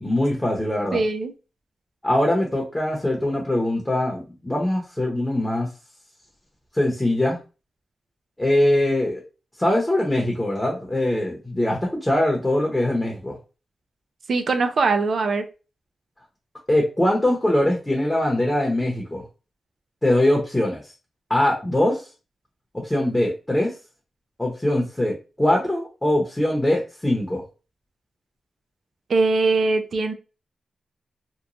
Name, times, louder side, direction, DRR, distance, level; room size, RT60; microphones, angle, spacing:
voice 1, 0.0-1.0 2.0-5.7 6.7-7.4 8.4-9.2 9.6-13.4 16.7-19.2 20.0-20.8 21.3-22.1 22.7-23.7 24.4-27.4, left 1 dB, 10° left, -1 dB, 0.8 m, -22 dB
voice 2, 0.9-1.3 14.3-15.5 29.1-30.1, right 3 dB, 65° right, 7 dB, 0.4 m, -21 dB
3.0 x 2.2 x 2.5 m, 0.32 s
cardioid pair, 85°, 0 cm